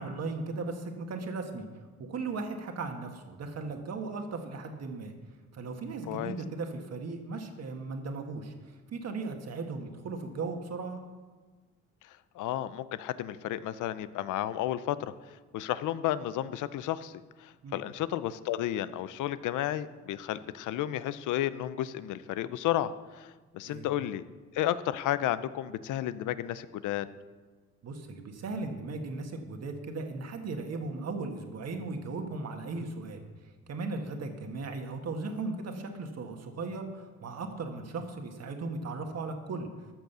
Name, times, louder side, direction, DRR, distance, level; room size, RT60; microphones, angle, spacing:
voice 1, 0.0-1.7 2.0-5.1 5.5-11.0 17.6-17.8 23.6-23.9 27.8-33.2 33.7-39.7, right 3 dB, 55° right, 4 dB, 1.8 m, -37 dB
voice 2, 12.0-24.2 24.5-27.1, left 12 dB, 85° left, 15 dB, 0.6 m, -32 dB
13.5 x 6.5 x 6.8 m, 1.3 s
cardioid pair, 90°, 30 cm